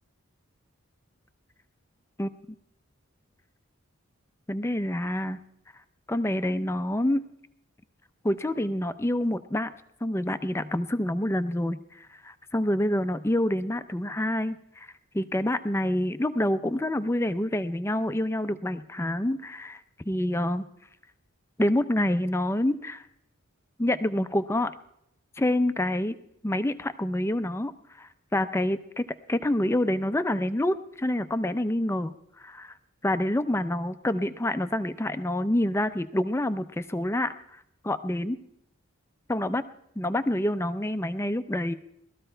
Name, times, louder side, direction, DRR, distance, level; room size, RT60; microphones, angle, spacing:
voice 1, 4.5-5.4 6.1-7.2 8.2-9.7 10.0-14.9 15.1-19.8 20.1-20.6 21.6-23.0 23.8-24.7 25.4-26.2 26.4-27.7 28.0-32.7 33.0-38.4 39.3-39.6 40.0-41.7, left 1 dB, 10° left, 12 dB, 0.5 m, -27 dB
18.5 x 13.5 x 4.4 m, 0.76 s
head